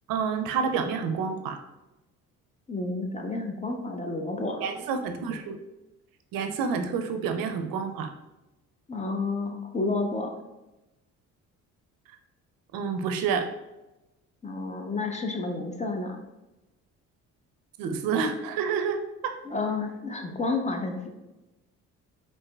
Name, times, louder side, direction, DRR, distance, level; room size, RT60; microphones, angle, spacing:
voice 1, 0.1-1.6 4.6-5.6 6.3-8.1 12.7-13.5 17.8-19.4, right 6 dB, 70° right, 7 dB, 0.5 m, -28 dB
voice 2, 2.7-4.6 8.9-10.3 14.4-16.2 19.5-21.1, left 3 dB, 20° left, 3 dB, 0.6 m, -30 dB
4.6 x 2.7 x 2.2 m, 1.0 s
supercardioid pair, 60°, 36 cm